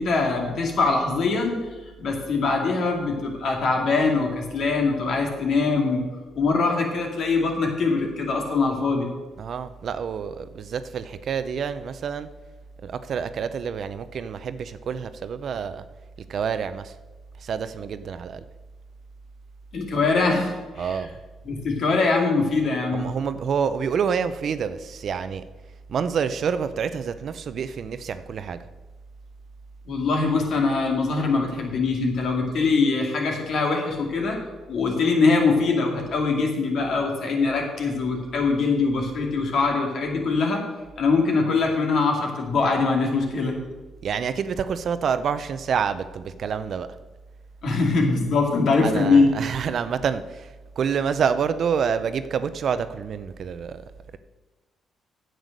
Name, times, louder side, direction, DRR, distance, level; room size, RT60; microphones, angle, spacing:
voice 1, 0.0-1.6 2.0-6.0 6.3-9.1 19.7-21.0 21.5-23.0 29.9-34.4 34.7-40.6 41.0-43.6 47.6-49.3, left 4 dB, 65° left, 2.5 m, -22 dB
voice 2, 9.4-12.3 12.8-15.8 16.3-16.9 17.4-18.4 20.7-21.2 22.9-25.4 25.9-28.6 44.0-46.9 48.8-53.8, right 7 dB, 60° right, 0.6 m, -27 dB
9.2 x 7.9 x 6.6 m
cardioid pair, 90°, 0 cm